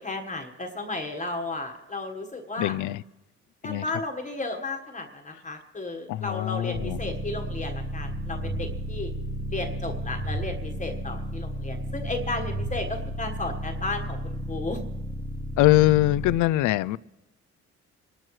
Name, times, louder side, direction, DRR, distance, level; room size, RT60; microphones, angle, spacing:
voice 1, 0.0-2.7 3.6-9.1 9.5-14.8, left 2 dB, 25° left, 4 dB, 1.4 m, -34 dB
voice 2, 2.6-3.0 3.6-3.8 6.1-7.0 15.6-17.0, left 17 dB, 80° left, 20 dB, 0.4 m, -22 dB
sound 1, 6.7-16.4, equal, 35° right, 1.4 m, -33 dB
25.0 x 12.0 x 3.2 m, 1.0 s
cardioid pair, 90°, 30 cm